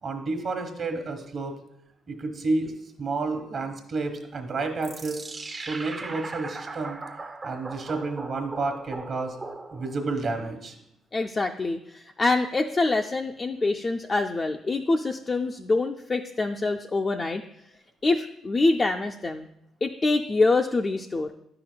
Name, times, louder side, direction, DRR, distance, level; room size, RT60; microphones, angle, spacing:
voice 1, 0.0-1.5 2.1-2.7 3.0-5.2 5.7-7.0 7.4-9.4 9.7-10.7, right 3 dB, 55° right, 5 dB, 1.2 m, -30 dB
sound 1, 4.8-10.1, right 3 dB, 35° right, 0.5 m, -39 dB
voice 2, 11.1-17.4 18.0-19.5 19.8-21.3, left 3 dB, 30° left, 3 dB, 0.3 m, -25 dB
10.0 x 5.8 x 2.2 m, 0.78 s
cardioid pair, 90°, 0 cm